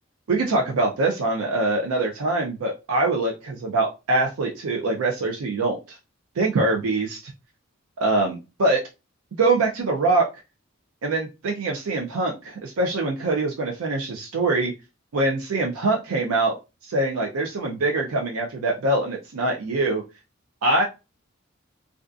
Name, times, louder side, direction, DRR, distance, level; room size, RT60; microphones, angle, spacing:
voice 1, 0.3-6.0 6.4-7.3 8.0-8.8 9.4-10.3 11.0-14.7 15.1-16.6 16.8-20.0 20.6-20.8, right 2 dB, 90° right, 1 dB, 0.5 m, -23 dB
2.5 x 2.3 x 2.3 m, 0.27 s
head